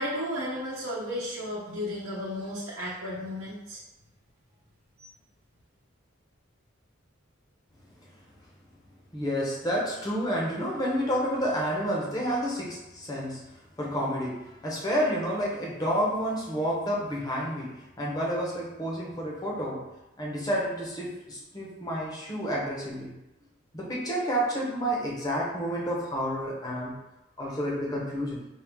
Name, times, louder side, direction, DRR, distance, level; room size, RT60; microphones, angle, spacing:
voice 1, 0.0-3.8 5.0-5.1, equal, 75° right, -8 dB, 0.9 m, -34 dB
voice 2, 9.1-19.9 20.2-23.1 23.7-27.0 27.4-28.5, equal, 20° left, -4 dB, 0.8 m, -30 dB
4.6 x 2.3 x 3.5 m, 0.96 s
head